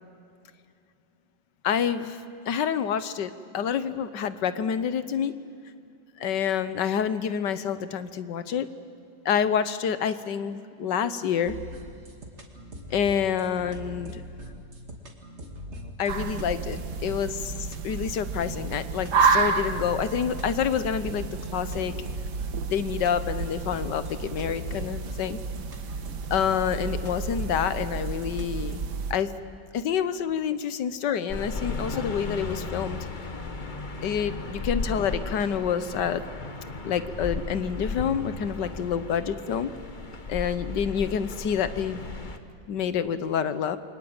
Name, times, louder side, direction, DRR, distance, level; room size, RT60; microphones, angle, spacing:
voice 1, 1.6-5.3 6.2-8.7 9.2-11.6 12.9-14.2 16.0-17.5 17.8-21.9 22.7-25.4 26.3-28.8 29.1-29.3 29.7-33.0 34.0-36.2 36.8-39.7 40.3-42.0 42.7-43.8, left 8 dB, 70° left, 13 dB, 1.6 m, -28 dB
sound 1, 11.5-29.0, equal, 35° right, 2.6 m, -41 dB
sound 2, 16.1-29.1, right 5 dB, 65° right, 1.8 m, -30 dB
sound 3, 31.3-42.4, left 3 dB, 30° left, 1.4 m, -35 dB
28.5 x 24.0 x 8.8 m, 2.4 s
omnidirectional pair, 2.0 m